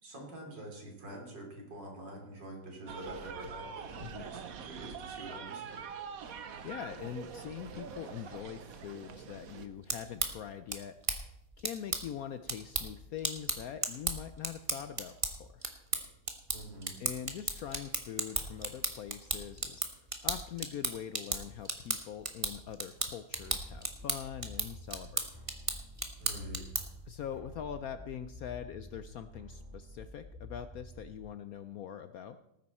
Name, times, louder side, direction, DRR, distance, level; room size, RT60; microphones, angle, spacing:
voice 1, 0.0-5.8 16.5-16.9 26.2-26.7, right 1 dB, 75° right, 0 dB, 3.9 m, -46 dB
sound 1, 2.9-9.7, right 6 dB, 55° right, 1.2 m, -44 dB
voice 2, 6.6-11.0 11.6-15.6 17.0-19.9 20.2-25.3 27.1-32.4, left 9 dB, 70° left, 11 dB, 0.8 m, -43 dB
sound 2, 9.7-27.1, right 2 dB, 20° right, 1.0 m, -37 dB
sound 3, 23.3-31.3, left 1 dB, 5° right, 2.5 m, -50 dB
18.5 x 9.4 x 4.3 m, 0.86 s
omnidirectional pair, 2.0 m